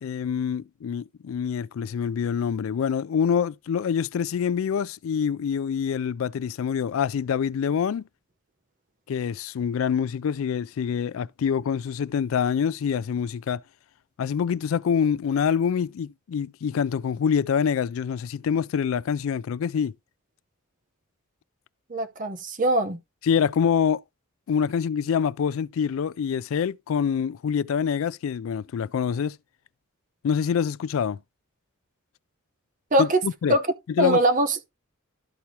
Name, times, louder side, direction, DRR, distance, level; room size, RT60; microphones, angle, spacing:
voice 1, 0.0-8.0 9.1-13.6 14.2-19.9 23.2-24.0 24.5-29.4 30.2-31.2 33.0-33.6 34.0-34.2, left 7 dB, 75° left, 0.3 m, -26 dB
voice 2, 21.9-23.0 32.9-33.2 33.5-33.6 34.0-34.6, right 1 dB, 40° right, 0.9 m, -22 dB
13.0 x 4.6 x 2.8 m
head